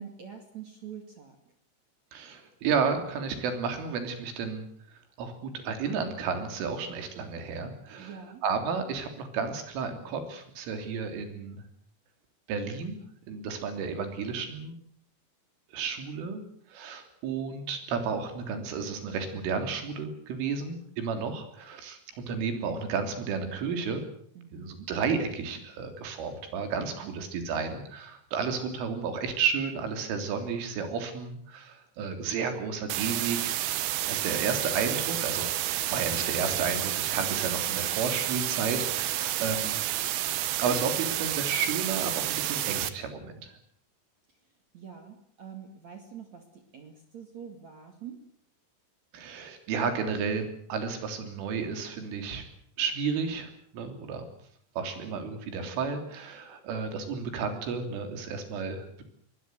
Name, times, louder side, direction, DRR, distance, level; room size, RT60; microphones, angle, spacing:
voice 1, 0.0-1.4 8.0-8.4 24.3-24.9 27.0-27.1 44.7-48.3, right 7 dB, 45° right, 5 dB, 2.9 m, -45 dB
voice 2, 2.1-4.7 4.9-11.6 12.5-13.0 13.3-14.8 15.7-16.4 16.7-24.1 24.5-33.6 34.0-35.5 35.9-39.8 40.5-43.6 49.1-52.4 52.8-54.3 54.8-59.0, right 5 dB, 90° right, 7 dB, 5.8 m, -32 dB
sound 1, 32.9-42.9, right 14 dB, 70° right, 2.4 m, -30 dB
23.0 x 19.5 x 8.1 m, 0.65 s
omnidirectional pair, 5.5 m